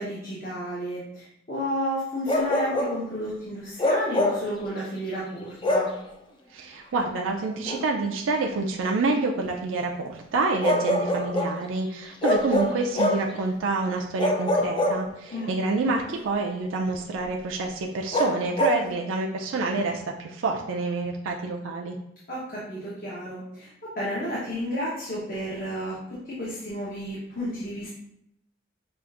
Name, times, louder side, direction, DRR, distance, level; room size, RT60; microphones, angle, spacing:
voice 1, 0.0-5.9 15.3-15.8 22.3-27.9, equal, 45° left, -8 dB, 0.9 m, -32 dB
Bark, 2.3-3.0 3.8-4.5 5.6-6.0 7.7-7.8 10.6-11.6 12.2-13.3 14.2-15.4 18.1-18.8, left 1 dB, 25° left, 0.4 m, -24 dB
voice 2, 6.5-22.0, right 3 dB, 85° right, 1 dB, 0.4 m, -27 dB
5.9 x 2.5 x 2.4 m, 0.77 s
head